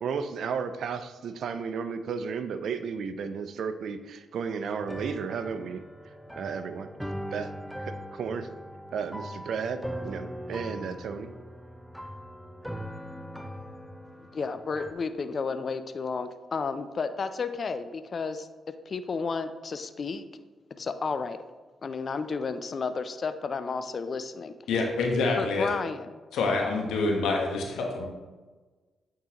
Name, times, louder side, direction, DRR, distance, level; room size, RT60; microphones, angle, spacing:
voice 1, 0.0-5.8 6.3-6.9 7.3-7.5 7.8-8.5 8.9-11.3, right 6 dB, 70° right, 10 dB, 0.4 m, -33 dB
sound 1, 4.8-14.9, equal, ahead, 0.5 m, -40 dB
voice 2, 14.3-18.5 18.9-20.2 20.8-21.4 21.8-24.5 25.4-26.1, left 4 dB, 55° left, 10 dB, 0.4 m, -32 dB
voice 3, 24.7-25.7 26.3-28.1, left 3 dB, 80° left, 1 dB, 1.1 m, -26 dB
8.7 x 3.7 x 2.9 m, 1.3 s
supercardioid pair, 50°, 0 cm